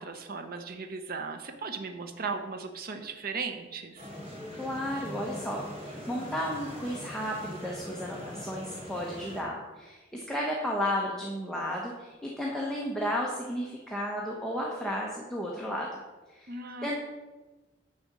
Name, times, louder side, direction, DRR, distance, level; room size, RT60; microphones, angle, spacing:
voice 1, 0.0-4.1 16.5-17.0, right 4 dB, 50° right, 6 dB, 0.7 m, -37 dB
sound 1, 4.0-9.4, left 1 dB, 30° right, 2.7 m, -42 dB
voice 2, 4.6-15.9 16.3-17.0, equal, 5° left, -3 dB, 1.0 m, -33 dB
9.7 x 4.3 x 7.3 m, 1.2 s
head